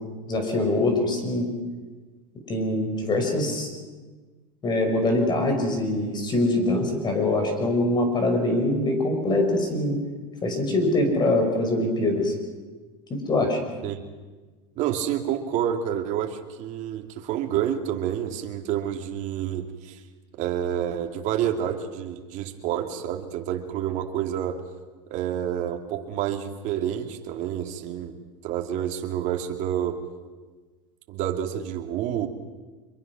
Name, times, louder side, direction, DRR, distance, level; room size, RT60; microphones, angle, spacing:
voice 1, 0.3-1.5 2.5-3.7 4.6-10.0 10.4-12.3 13.1-13.6, left 2 dB, 25° left, 4 dB, 5.7 m, -23 dB
voice 2, 14.8-20.0 20.4-24.6 25.1-30.0 31.1-32.3, right 10 dB, 50° right, 4 dB, 2.6 m, -29 dB
25.5 x 23.0 x 6.1 m, 1.3 s
supercardioid pair, 125°, 17 cm